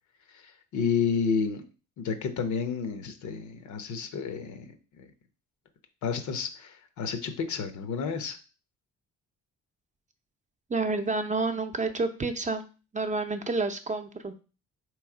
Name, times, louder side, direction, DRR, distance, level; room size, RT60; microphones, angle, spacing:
voice 1, 0.3-1.6 2.0-4.7 4.9-5.1 6.0-8.4, left 6 dB, 75° left, 7 dB, 0.8 m, -31 dB
voice 2, 10.7-12.6 12.9-14.4, right 3 dB, 25° right, 6 dB, 0.6 m, -29 dB
3.4 x 3.1 x 4.8 m, 0.33 s
cardioid pair, 90°, 30 cm